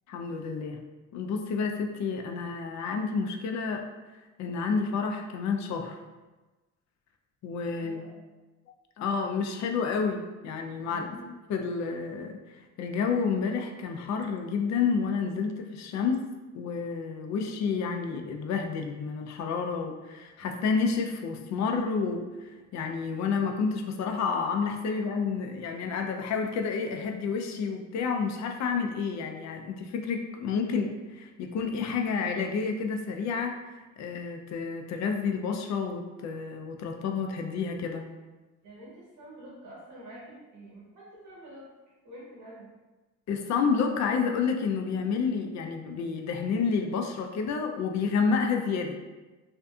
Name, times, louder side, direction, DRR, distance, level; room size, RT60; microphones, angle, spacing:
voice 1, 0.1-0.8 1.1-3.8 4.1-6.0 7.4-8.0 9.0-11.1 11.5-16.2 16.5-38.0 43.3-49.0, left 5 dB, 65° left, 4 dB, 0.4 m, -30 dB
voice 2, 7.8-8.2 10.9-11.3 20.4-20.8 38.6-41.7 42.0-42.7, right 1 dB, 90° right, -6 dB, 1.2 m, -47 dB
2.5 x 2.4 x 2.3 m, 1.2 s
cardioid pair, 90°, 30 cm